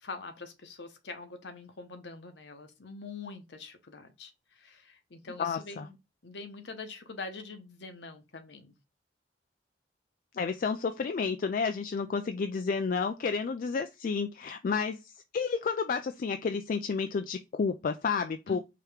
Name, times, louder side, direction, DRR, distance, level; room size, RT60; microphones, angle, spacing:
voice 1, 0.0-6.0 6.2-8.7 18.5-18.6, left 4 dB, 65° left, 0.9 m, -44 dB
voice 2, 5.4-5.9 10.3-18.6, left 5 dB, 45° left, 0.3 m, -31 dB
4.8 x 2.9 x 3.4 m
head